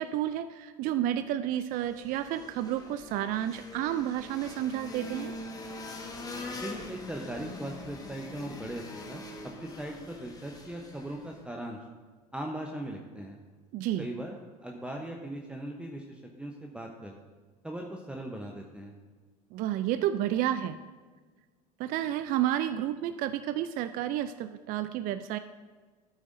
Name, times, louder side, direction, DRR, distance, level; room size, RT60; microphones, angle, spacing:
voice 1, 0.0-5.3 13.7-14.1 19.5-20.8 21.8-25.4, right 12 dB, 45° right, 11 dB, 0.4 m, -31 dB
sound 1, 1.6-11.5, left 2 dB, 20° left, 1.5 m, -43 dB
voice 2, 6.6-11.8 12.3-13.4 14.0-17.1 17.6-18.9, right 1 dB, 5° right, 1 dB, 0.9 m, -39 dB
13.0 x 8.9 x 2.6 m, 1.4 s
hypercardioid pair, 80°, 21 cm